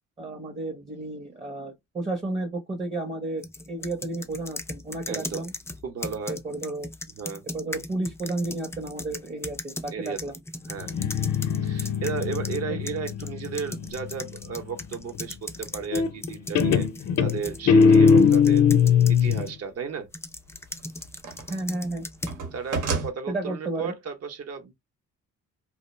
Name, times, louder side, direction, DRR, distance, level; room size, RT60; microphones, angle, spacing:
voice 1, 0.2-5.5 6.3-6.9 7.5-10.4 12.7-12.8 21.5-22.1 23.3-23.9, right 2 dB, 20° right, 0.6 m, -32 dB
sound 1, 3.4-12.6 12.9-19.5 20.1-22.4, left 2 dB, 10° left, 0.3 m, -38 dB
voice 2, 5.1-5.5 5.8-6.4 7.2-7.4 9.9-10.2 10.7-11.0 11.6-16.9 17.2-20.1 22.5-24.7, right 6 dB, 55° right, 0.8 m, -34 dB
Guitar, 10.8-14.4 15.9-16.3 16.6-19.5, left 6 dB, 60° left, 0.6 m, -20 dB
sound 2, 20.3-21.6 21.9-23.1, right 4 dB, 85° right, 0.9 m, -31 dB
2.3 x 2.0 x 3.0 m
cardioid pair, 90°, 30 cm